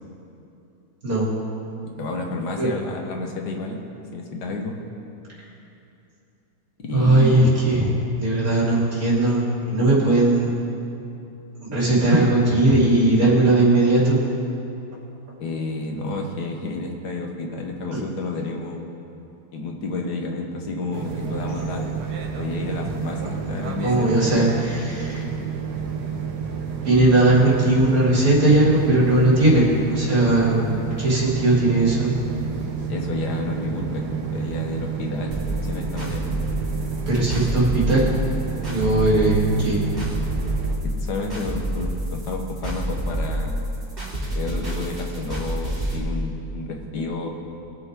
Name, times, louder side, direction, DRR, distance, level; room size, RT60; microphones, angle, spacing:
voice 1, 2.0-3.8 4.1-4.8 6.8-7.5 15.4-18.9 19.5-21.9 22.4-24.5 32.9-36.3 40.8-43.6 44.3-47.3, left 2 dB, 85° left, 2 dB, 1.8 m, -30 dB
voice 2, 6.9-10.5 11.6-14.2 17.9-18.0 23.5-23.6 23.8-25.2 26.8-32.1 37.1-38.1 38.7-39.8, right 2 dB, 60° right, -6 dB, 3.3 m, -18 dB
sound 1, 20.9-40.8, right 6 dB, 80° right, 1.6 m, -30 dB
sound 2, 35.3-46.0, right 1 dB, 35° right, 3.2 m, -28 dB
21.5 x 8.1 x 3.8 m, 2.8 s
omnidirectional pair, 1.7 m